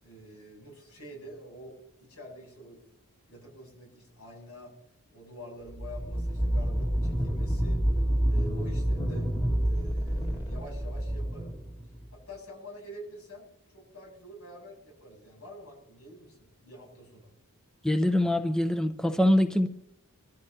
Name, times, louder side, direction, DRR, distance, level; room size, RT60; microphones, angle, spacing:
voice 1, 0.0-2.9 3.3-4.7 5.1-7.8 8.2-9.3 9.6-11.5 12.1-13.5 13.7-17.3, equal, 85° left, 0 dB, 7.8 m, -47 dB
sound 1, 5.7-12.1, right 1 dB, 25° left, 1.9 m, -28 dB
voice 2, 17.8-19.7, left 1 dB, 5° left, 8 dB, 0.6 m, -24 dB
25.0 x 14.5 x 2.8 m, 0.78 s
head